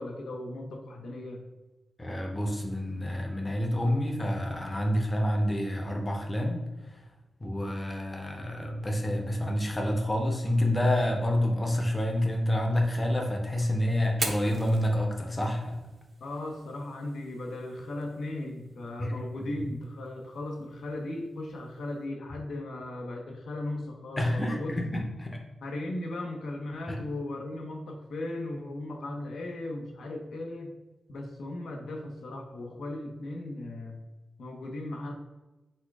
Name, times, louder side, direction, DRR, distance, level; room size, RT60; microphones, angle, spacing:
voice 1, 0.0-1.4 16.2-24.8 25.6-30.7 31.1-34.0 34.4-35.1, left 2 dB, 80° left, 2 dB, 0.8 m, -37 dB
voice 2, 2.0-6.6 7.4-15.7 19.0-19.1 19.4-19.5 24.2-25.4 26.9-27.0, left 1 dB, 15° left, 2 dB, 0.6 m, -28 dB
Fire, 14.1-22.0, right 3 dB, 40° right, 0.6 m, -43 dB
4.2 x 2.4 x 4.6 m, 1.1 s
wide cardioid pair, 135°, 0 cm